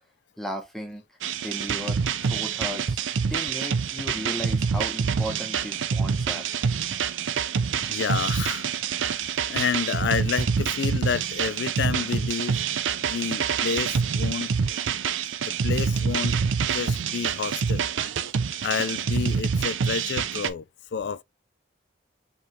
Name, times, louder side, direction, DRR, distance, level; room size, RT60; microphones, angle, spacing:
voice 1, 0.4-1.0 1.4-6.4, equal, ahead, 0.9 m, -35 dB
sound 1, 1.2-20.5, right 6 dB, 90° right, 0.5 m, -26 dB
voice 2, 7.9-8.7 9.0-12.6 13.0-14.5 15.5-17.9 18.6-20.6 20.9-21.2, left 6 dB, 65° left, 0.3 m, -30 dB
4.6 x 3.5 x 3.2 m
head